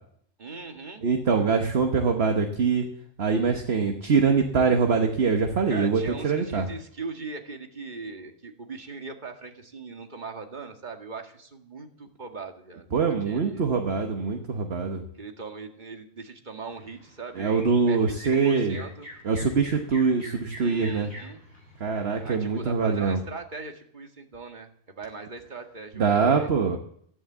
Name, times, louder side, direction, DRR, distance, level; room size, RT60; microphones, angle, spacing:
voice 1, 0.4-1.0 5.7-12.9 13.3-13.6 15.1-19.1 20.6-21.4 22.2-26.8, right 4 dB, 35° right, 4 dB, 2.0 m, -40 dB
voice 2, 1.0-2.9 3.2-6.7 12.9-15.0 17.4-18.8 19.2-21.1 21.8-23.2 26.0-26.8, right 5 dB, 50° right, 4 dB, 1.4 m, -23 dB
sound 1, 16.7-23.3, equal, 75° left, 8.2 m, -46 dB
14.5 x 11.0 x 7.3 m, 0.66 s
omnidirectional pair, 1.4 m